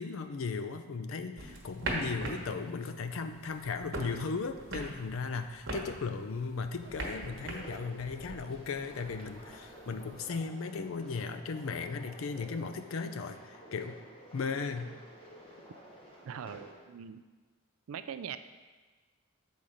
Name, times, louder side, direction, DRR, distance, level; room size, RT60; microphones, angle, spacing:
voice 1, 0.0-14.0 14.3-14.9, left 4 dB, 70° left, 9 dB, 0.5 m, -36 dB
sound 1, 1.4-10.4, right 2 dB, 60° right, 1.2 m, -42 dB
sound 2, 6.8-16.7, equal, 25° left, 1.0 m, -51 dB
voice 2, 16.2-17.2 17.9-18.4, right 8 dB, 80° right, 11 dB, 0.4 m, -41 dB
7.4 x 4.0 x 5.0 m, 1.3 s
head